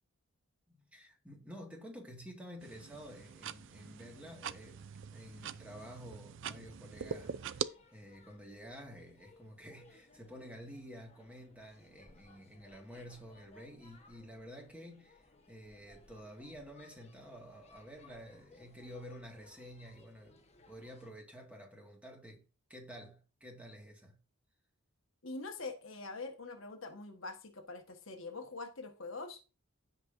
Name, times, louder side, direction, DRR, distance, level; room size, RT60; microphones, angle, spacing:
voice 1, 0.7-22.4 22.7-24.2, equal, 5° right, 1.9 m, -51 dB
sound 1, 2.6-7.7, right 7 dB, 60° right, 0.4 m, -43 dB
sound 2, 7.0-21.1, left 2 dB, 30° left, 1.2 m, -63 dB
voice 2, 25.2-29.4, left 3 dB, 65° left, 1.4 m, -44 dB
15.5 x 5.4 x 2.6 m
head